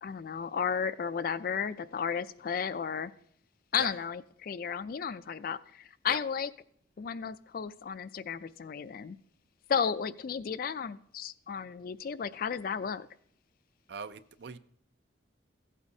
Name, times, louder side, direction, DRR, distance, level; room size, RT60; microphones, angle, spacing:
voice 1, 0.0-3.1 3.7-6.5 7.0-9.2 9.7-13.1, left 7 dB, 50° left, 0.3 m, -33 dB
voice 2, 13.9-14.6, right 5 dB, 60° right, 0.4 m, -41 dB
15.0 x 8.3 x 2.7 m
head